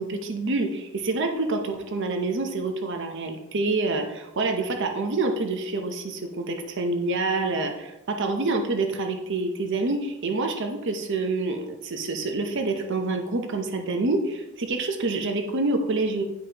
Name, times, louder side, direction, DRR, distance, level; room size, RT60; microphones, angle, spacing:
voice 1, 0.0-16.2, right 3 dB, 60° right, 5 dB, 0.7 m, -27 dB
10.0 x 5.2 x 2.9 m, 0.95 s
head